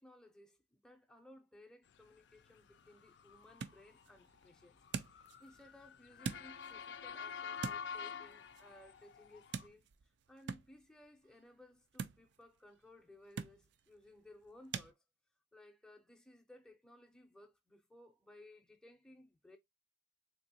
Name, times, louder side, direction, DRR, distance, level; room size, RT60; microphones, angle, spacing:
voice 1, 0.0-4.8 5.1-15.0 15.5-19.6, left 1 dB, 5° left, 0.5 m, -60 dB
Motor vehicle (road) / Siren, 2.4-9.7, left 6 dB, 60° left, 0.3 m, -48 dB
sound 1, 2.4-14.9, right 6 dB, 60° right, 0.3 m, -49 dB
3.7 x 2.9 x 2.7 m
head